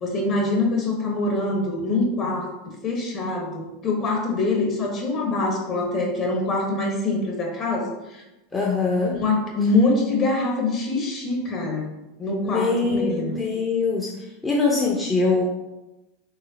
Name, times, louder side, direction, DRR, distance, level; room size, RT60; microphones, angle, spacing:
voice 1, 0.0-2.5 2.8-8.2 9.1-11.9 12.2-13.3, left 2 dB, 40° left, 0 dB, 1.4 m, -24 dB
voice 2, 8.5-9.2 12.4-14.1 14.4-15.4, left 3 dB, 15° left, -2 dB, 0.7 m, -23 dB
4.7 x 3.6 x 2.8 m, 0.97 s
hypercardioid pair, 95°, 0 cm